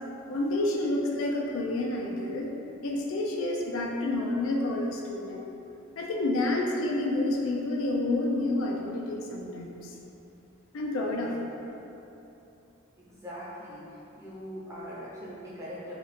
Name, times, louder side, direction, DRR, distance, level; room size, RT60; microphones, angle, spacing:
voice 1, 0.3-2.5 2.8-5.4 6.0-9.9 10.7-11.5, left 2 dB, 65° left, 0 dB, 0.4 m, -29 dB
voice 2, 11.1-11.4 13.0-13.8 14.2-15.9, equal, 15° right, -8 dB, 0.6 m, -41 dB
3.0 x 2.4 x 4.0 m, 2.9 s
head